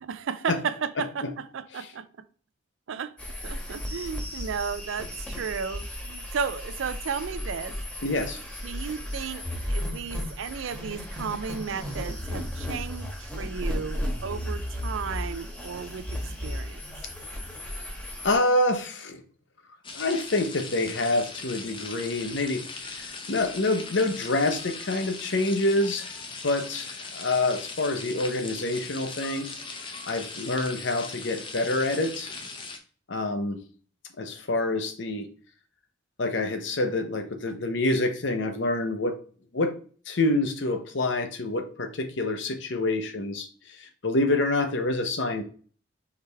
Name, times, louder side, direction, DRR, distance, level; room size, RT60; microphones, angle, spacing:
voice 1, 0.0-2.0 2.9-3.1 3.4-7.7 8.6-9.4 9.7-16.8, right 6 dB, 70° right, 0.4 m, -34 dB
sound 1, 3.2-18.4, equal, 5° left, 1.1 m, -34 dB
voice 2, 8.0-8.4 18.2-19.2 19.9-22.6 22.9-26.1 26.4-29.5 30.1-32.3 33.1-33.6 34.2-35.3 36.2-39.1 39.5-39.7 40.1-45.4, left 2 dB, 60° left, 0.8 m, -27 dB
sound 2, 19.8-32.8, left 4 dB, 25° left, 0.6 m, -39 dB
4.7 x 3.3 x 3.3 m
head